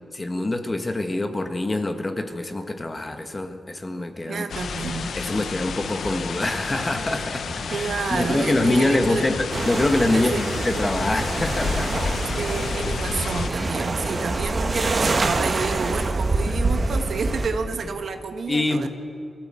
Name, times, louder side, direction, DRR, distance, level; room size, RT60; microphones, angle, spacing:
voice 1, 0.1-4.6 5.1-12.2 16.5-16.7 18.5-18.9, left 2 dB, 25° left, 7 dB, 1.5 m, -25 dB
voice 2, 4.3-5.5 7.7-9.3 10.1-10.4 12.4-18.9, right 4 dB, 70° right, 6 dB, 1.5 m, -29 dB
sound 1, 4.5-13.5, left 5 dB, 75° left, 1.0 m, -31 dB
sound 2, 6.0-11.3 11.6-15.0, equal, 10° left, 2.3 m, -37 dB
sound 3, 9.5-17.5, right 3 dB, 45° right, 1.9 m, -26 dB
23.5 x 15.0 x 7.7 m, 2.5 s
wide cardioid pair, 100°, 0 cm